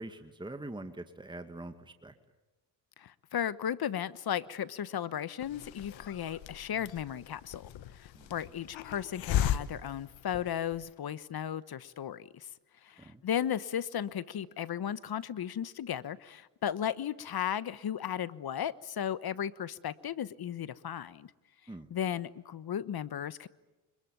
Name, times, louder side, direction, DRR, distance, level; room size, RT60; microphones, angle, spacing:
voice 1, 0.0-2.1 8.1-8.3 13.0-13.2 21.7-21.9, right 2 dB, 10° right, 8 dB, 2.1 m, -44 dB
voice 2, 3.0-12.5 12.8-21.3 21.9-23.5, left 9 dB, 50° left, 17 dB, 1.2 m, -35 dB
Hiss, 5.4-10.9, left 11 dB, 65° left, 1.5 m, -36 dB
25.5 x 22.5 x 9.1 m, 1.1 s
supercardioid pair, 70°, 49 cm